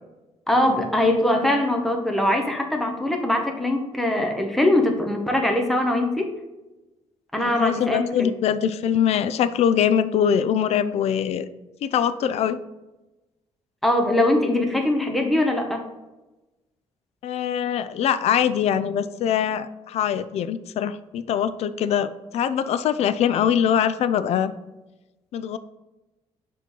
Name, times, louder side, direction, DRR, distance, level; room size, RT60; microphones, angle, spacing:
voice 1, 0.5-6.3 7.3-8.3 13.8-15.9, left 1 dB, ahead, 2 dB, 0.7 m, -22 dB
voice 2, 7.4-11.5 11.8-12.6 17.2-24.5 25.3-25.6, left 8 dB, 65° left, 14 dB, 0.4 m, -23 dB
5.8 x 3.0 x 5.4 m, 1.0 s
cardioid pair, 135°, 12 cm